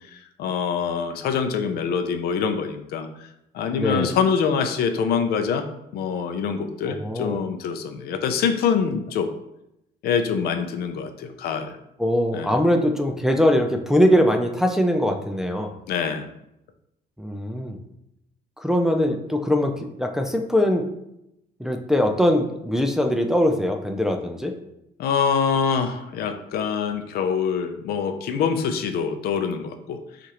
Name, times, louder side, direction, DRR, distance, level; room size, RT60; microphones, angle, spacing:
voice 1, 0.1-3.3 3.5-5.7 5.9-9.3 10.0-11.8 12.3-12.6 15.9-16.3 25.0-30.0, left 6 dB, 70° left, 8 dB, 0.5 m, -25 dB
voice 2, 3.8-4.1 6.9-7.4 12.0-15.7 17.2-17.8 18.6-20.9 21.6-24.5, equal, 5° right, 3 dB, 0.4 m, -22 dB
6.0 x 2.5 x 2.9 m, 0.82 s
cardioid pair, 110°, 17 cm